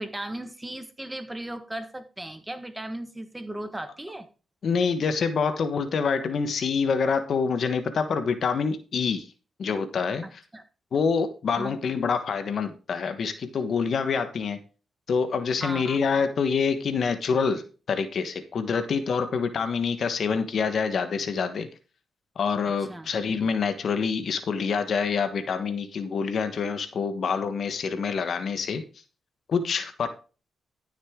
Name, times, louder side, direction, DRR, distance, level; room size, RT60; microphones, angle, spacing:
voice 1, 0.0-4.3 10.2-10.6 11.6-11.8 15.6-16.0 18.7-18.9 22.9-23.1, right 1 dB, 15° right, 9 dB, 1.4 m, -36 dB
voice 2, 4.6-9.3 9.6-10.2 10.9-14.6 15.1-21.7 22.4-28.8 29.5-30.1, left 5 dB, 60° left, 9 dB, 1.3 m, -26 dB
13.0 x 6.5 x 3.7 m, 0.34 s
cardioid pair, 70°, 0 cm